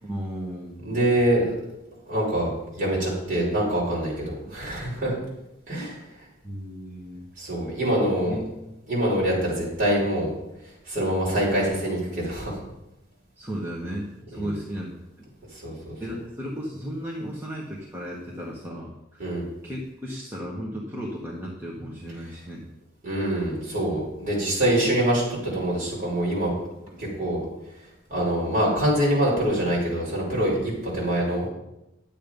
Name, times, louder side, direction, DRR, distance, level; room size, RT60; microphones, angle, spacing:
voice 1, 0.0-1.2 4.5-4.6 6.4-7.2 8.3-9.2 13.4-15.3 16.0-19.2 19.6-22.6 26.9-27.0, equal, 10° right, -4 dB, 1.3 m, -35 dB
voice 2, 0.8-1.5 2.1-5.2 5.7-6.0 7.4-8.4 8.9-10.3 10.9-12.6 14.3-14.5 15.5-15.9 19.2-19.5 23.0-26.6 27.0-27.4 28.1-31.5, right 1 dB, 40° right, -5 dB, 5.3 m, -25 dB
11.0 x 8.5 x 5.3 m, 0.91 s
head